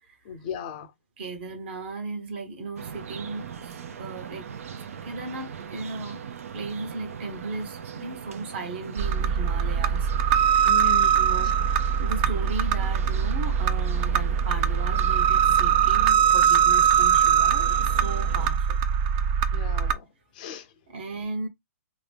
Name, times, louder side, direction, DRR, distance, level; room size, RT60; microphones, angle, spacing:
voice 1, 0.2-0.9 10.7-11.2 19.5-20.0 20.3-20.7, left 6 dB, 30° left, 0.6 m, -36 dB
voice 2, 1.2-4.5 5.0-6.2 6.5-11.5 12.0-18.8 20.9-21.5, right 3 dB, 45° right, 1.1 m, -36 dB
sound 1, 2.8-18.5, right 7 dB, 65° right, 0.6 m, -40 dB
sound 2, 9.0-19.9, right 8 dB, 25° right, 0.3 m, -22 dB
2.8 x 2.6 x 3.4 m
hypercardioid pair, 165°, 8 cm